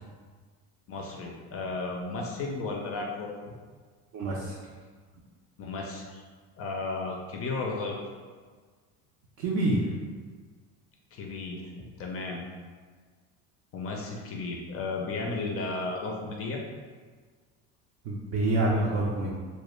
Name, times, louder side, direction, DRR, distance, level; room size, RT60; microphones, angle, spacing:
voice 1, 0.9-3.4 5.6-6.2 6.6-8.0 11.1-12.4 13.7-16.6, left 3 dB, 40° left, 0 dB, 0.4 m, -34 dB
voice 2, 4.1-4.6 9.4-9.8 18.1-19.3, right 2 dB, 50° right, -4 dB, 0.5 m, -26 dB
2.2 x 2.0 x 3.0 m, 1.5 s
supercardioid pair, 95°, 37 cm